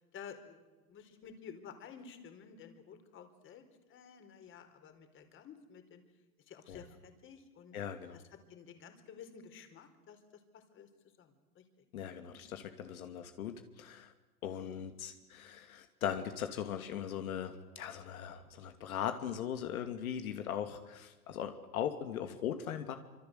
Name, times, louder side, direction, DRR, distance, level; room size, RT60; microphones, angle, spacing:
voice 1, 0.1-0.6 0.9-6.0 6.5-7.8 8.1-10.9 11.2-11.8 12.1-12.3 14.7-14.8, left 7 dB, 25° left, 8 dB, 4.3 m, -53 dB
voice 2, 7.7-8.2 11.9-14.1 14.4-23.0, left 9 dB, 65° left, 7 dB, 2.8 m, -39 dB
26.0 x 26.0 x 8.1 m, 1.2 s
hypercardioid pair, 130°, 45 cm